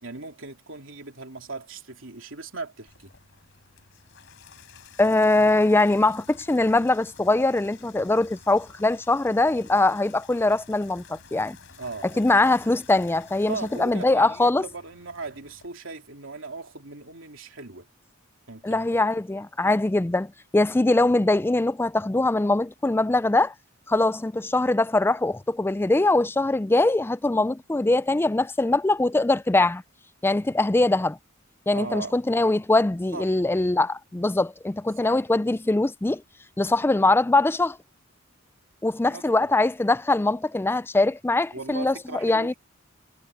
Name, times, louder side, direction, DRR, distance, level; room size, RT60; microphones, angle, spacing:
voice 1, 0.0-3.1 11.8-12.3 13.5-17.9 18.5-19.0 31.7-32.1 33.1-33.4 35.0-35.2 39.1-39.5 41.5-42.6, right 3 dB, 65° right, 3.5 m, -38 dB
Water tap faucet / Bathtub (filling or washing), 2.9-15.7, left 5 dB, 65° left, 4.3 m, -51 dB
voice 2, 5.0-11.6 12.2-14.6 18.6-23.5 23.9-29.8 30.2-31.2 31.7-36.2 36.6-37.8 38.8-41.9 42.2-42.5, left 2 dB, 10° left, 0.4 m, -22 dB
head